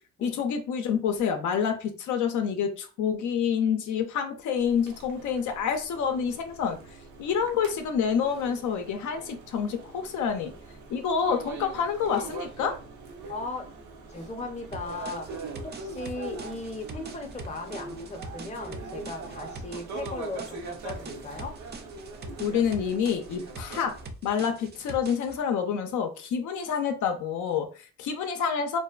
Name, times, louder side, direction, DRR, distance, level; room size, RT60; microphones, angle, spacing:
voice 1, 0.2-6.8 7.2-10.5 10.9-12.8 22.4-24.0 24.2-28.8, left 7 dB, 75° left, 6 dB, 0.5 m, -28 dB
sound 1, 4.6-24.1, right 3 dB, 80° right, 0.7 m, -42 dB
voice 2, 13.3-13.7 14.1-21.6, left 3 dB, 25° left, 4 dB, 0.6 m, -37 dB
sound 2, 14.7-25.4, right 3 dB, 35° right, 0.4 m, -43 dB
2.6 x 2.2 x 2.3 m, 0.36 s
cardioid pair, 90°, 30 cm